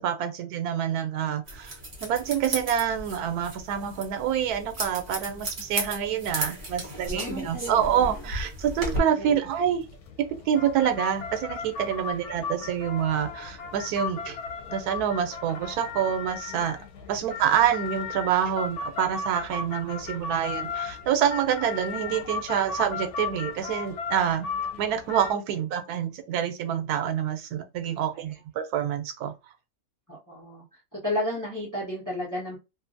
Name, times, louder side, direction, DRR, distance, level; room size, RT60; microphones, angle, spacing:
voice 1, 0.0-1.7 2.0-9.9 10.5-14.4 14.7-16.8 17.1-24.5 24.8-29.3, right 9 dB, 85° right, 1.1 m, -27 dB
sound 1, 1.5-9.0, right 1 dB, 35° right, 1.0 m, -35 dB
voice 2, 7.0-8.3 9.2-9.4 30.1-30.6 30.9-32.6, left 1 dB, 15° left, 1.0 m, -33 dB
sound 2, 8.8-25.3, left 5 dB, 75° left, 1.1 m, -36 dB
2.6 x 2.5 x 2.5 m
omnidirectional pair, 1.6 m